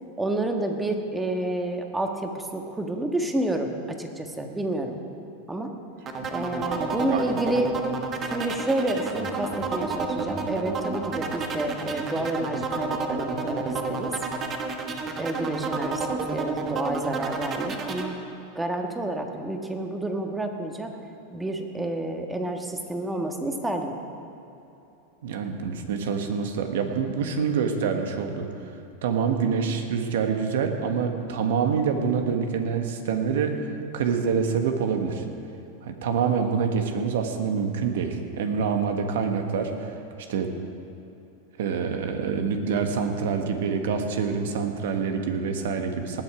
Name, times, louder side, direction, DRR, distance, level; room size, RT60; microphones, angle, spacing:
voice 1, 0.2-5.0 5.5-5.7 6.3-7.7 8.2-14.1 15.2-18.2 18.5-20.9 21.3-24.0, right 1 dB, 10° right, 4 dB, 1.5 m, -29 dB
sound 1, 6.1-18.1, right 4 dB, 30° right, 1.4 m, -30 dB
voice 2, 6.6-7.3 25.2-28.5 29.0-35.3 35.8-39.9 40.3-40.5 41.6-46.2, right 6 dB, 70° right, 5 dB, 1.4 m, -26 dB
19.0 x 7.8 x 4.9 m, 2.9 s
hypercardioid pair, 105°, 0 cm